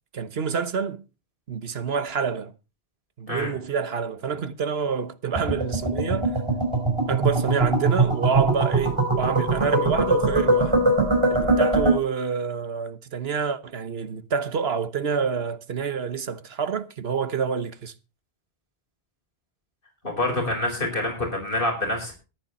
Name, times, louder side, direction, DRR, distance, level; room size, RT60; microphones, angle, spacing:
voice 1, 0.1-1.0 1.5-2.5 3.2-6.3 7.1-10.8 11.3-17.9, right 6 dB, 75° right, 1.3 m, -27 dB
sound 1, 5.4-11.9, right 2 dB, 25° right, 4.6 m, -22 dB
voice 2, 20.0-22.1, left 2 dB, 55° left, 5.4 m, -26 dB
14.0 x 11.0 x 4.2 m
omnidirectional pair, 1.1 m